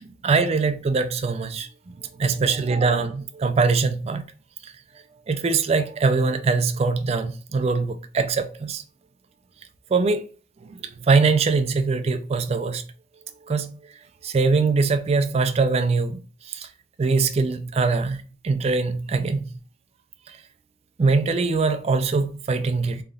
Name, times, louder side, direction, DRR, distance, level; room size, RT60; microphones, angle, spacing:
voice 1, 0.2-1.7 2.2-4.2 5.3-8.8 9.9-10.3 11.0-12.8 13.5-13.7 14.2-16.2 16.5-16.7 17.0-18.2 18.4-19.4 21.0-23.0, right 4 dB, 35° right, 0.3 m, -22 dB
3.7 x 3.4 x 2.3 m
head